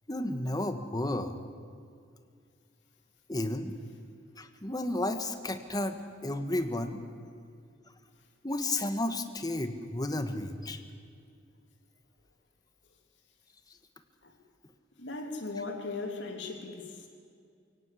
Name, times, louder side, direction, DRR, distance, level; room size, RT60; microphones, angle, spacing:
voice 1, 0.1-1.4 3.3-3.7 4.4-7.0 8.4-10.8, left 1 dB, 20° left, 8 dB, 1.4 m, -32 dB
voice 2, 15.0-17.1, left 3 dB, 70° left, 3 dB, 3.1 m, -38 dB
23.5 x 17.5 x 8.4 m, 2.3 s
head